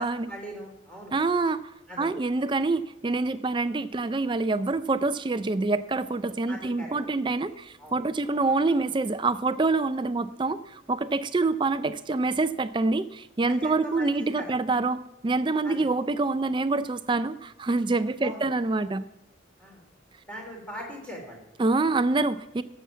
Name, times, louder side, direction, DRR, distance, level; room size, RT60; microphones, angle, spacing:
voice 1, 0.0-1.1 1.9-2.1 6.5-6.9 7.8-7.9 13.5-14.6 15.6-15.9 18.2-18.5 19.6-19.8 20.3-21.4, equal, 5° left, 0 dB, 3.4 m, -40 dB
voice 2, 1.1-1.6 2.0-19.0 21.6-22.6, right 3 dB, 25° right, 13 dB, 0.4 m, -26 dB
16.0 x 7.0 x 7.3 m, 0.85 s
head